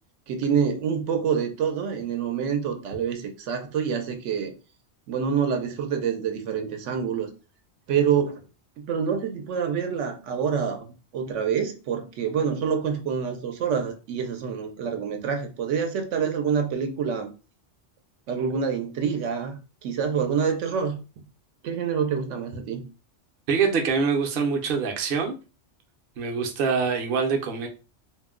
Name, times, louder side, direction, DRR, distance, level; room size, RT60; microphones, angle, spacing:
voice 1, 0.3-4.5 5.1-7.3 7.9-8.4 8.8-17.3 18.3-21.2 21.6-22.9, right 7 dB, 85° right, 5 dB, 0.9 m, -27 dB
voice 2, 23.5-25.4 26.2-27.7, right 5 dB, 60° right, 3 dB, 0.8 m, -24 dB
2.5 x 2.1 x 3.5 m, 0.32 s
omnidirectional pair, 1.2 m